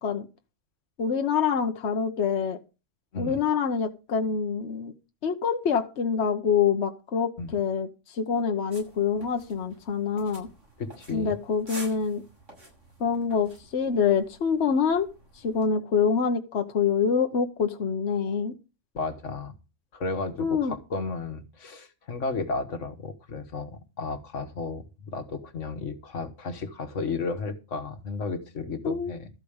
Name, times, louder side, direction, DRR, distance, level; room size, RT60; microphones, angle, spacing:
voice 1, 1.0-2.6 3.2-4.9 5.2-10.5 11.1-12.2 13.0-15.1 15.3-18.5 20.4-20.7 28.8-29.1, left 6 dB, 65° left, 1.3 m, -26 dB
sound 1, 8.7-15.6, right 1 dB, 85° right, 6.8 m, -49 dB
voice 2, 10.8-11.4 18.9-19.5 19.9-29.3, left 4 dB, 80° left, 1.7 m, -33 dB
13.5 x 5.1 x 8.6 m
omnidirectional pair, 1.3 m